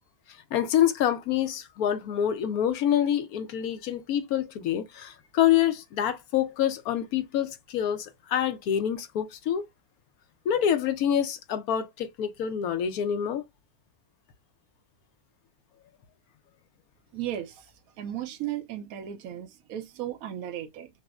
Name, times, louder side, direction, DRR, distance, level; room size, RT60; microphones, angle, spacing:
voice 1, 0.5-9.6 10.5-13.4, left 10 dB, 75° left, 1.0 m, -26 dB
voice 2, 17.1-17.6 18.0-20.9, right 11 dB, 70° right, 1.0 m, -35 dB
6.0 x 2.0 x 2.3 m
omnidirectional pair, 1.7 m